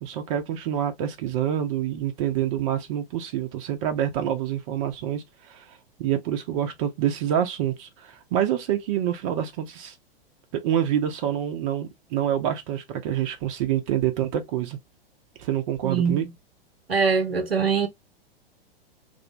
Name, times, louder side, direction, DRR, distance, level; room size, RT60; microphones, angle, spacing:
voice 1, 0.0-5.6 6.0-9.9 10.5-14.8 15.4-16.3, right 10 dB, 35° right, 0.5 m, -27 dB
voice 2, 15.8-16.3 16.9-17.9, right 5 dB, 80° right, 0.7 m, -23 dB
2.4 x 2.0 x 2.6 m
figure-of-eight pair, 100°, 30 cm